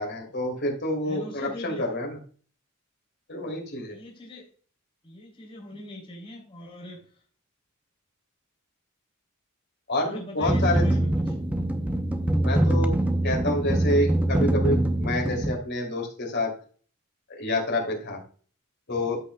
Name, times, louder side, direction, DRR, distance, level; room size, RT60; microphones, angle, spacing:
voice 1, 0.0-2.2 3.3-4.0 9.9-10.8 12.4-13.0 13.2-16.5 17.3-18.2 18.9-19.2, left 1 dB, 50° left, 1 dB, 3.0 m, -28 dB
voice 2, 1.0-2.0 3.7-4.5 5.0-7.0 10.1-11.3, left 1 dB, 25° left, -2 dB, 3.2 m, -42 dB
sound 1, 10.4-15.5, right 1 dB, 5° right, 0.6 m, -24 dB
14.0 x 5.6 x 2.2 m, 0.44 s
head